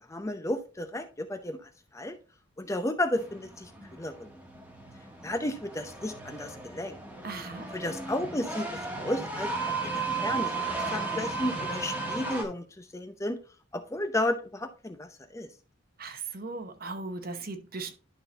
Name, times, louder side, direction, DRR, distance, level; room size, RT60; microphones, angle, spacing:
voice 1, 0.1-2.2 2.6-3.7 4.0-4.3 5.2-7.0 7.7-13.4 13.7-15.5, left 1 dB, 15° left, 0.6 m, -33 dB
sound 1, 3.2-12.4, right 3 dB, 5° right, 1.3 m, -35 dB
voice 2, 7.2-7.7 16.0-18.0, right 3 dB, 50° right, 1.0 m, -38 dB
11.5 x 3.8 x 4.0 m
head